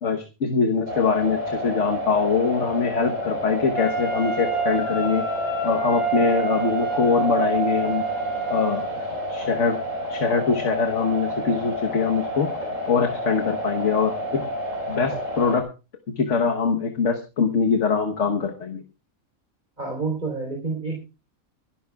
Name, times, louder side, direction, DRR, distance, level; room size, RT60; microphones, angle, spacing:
voice 1, 0.0-5.2 5.6-8.0 8.5-8.9 9.3-9.8 10.1-12.5 12.9-14.4 14.9-15.7 16.2-18.8, left 5 dB, 60° left, 4 dB, 1.5 m, -23 dB
sound 1, 0.9-15.6, equal, 60° right, 4.6 m, -30 dB
Wind instrument woodwind instrument, 3.7-9.0, right 5 dB, 80° left, 4.2 m, -28 dB
voice 2, 19.8-21.0, right 4 dB, 30° right, 1 dB, 4.0 m, -28 dB
25.0 x 12.0 x 2.4 m, 0.30 s
omnidirectional pair, 1.5 m